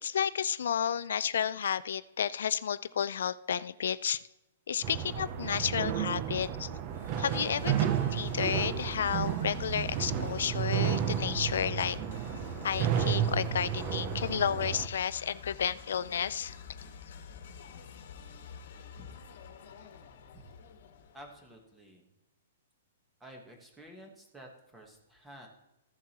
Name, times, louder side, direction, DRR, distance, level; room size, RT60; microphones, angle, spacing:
voice 1, 0.0-4.2 4.7-6.7 7.2-12.0 12.6-16.5, left 8 dB, 70° left, 15 dB, 0.3 m, -32 dB
sound 1, 4.8-14.9, right 9 dB, 25° right, 0.5 m, -32 dB
sound 2, 6.9-21.6, left 6 dB, 55° left, 1.3 m, -48 dB
voice 2, 21.1-22.1 23.2-25.5, equal, 5° right, 2 dB, 1.2 m, -51 dB
14.5 x 7.2 x 2.9 m, 0.95 s
hypercardioid pair, 175°, 0 cm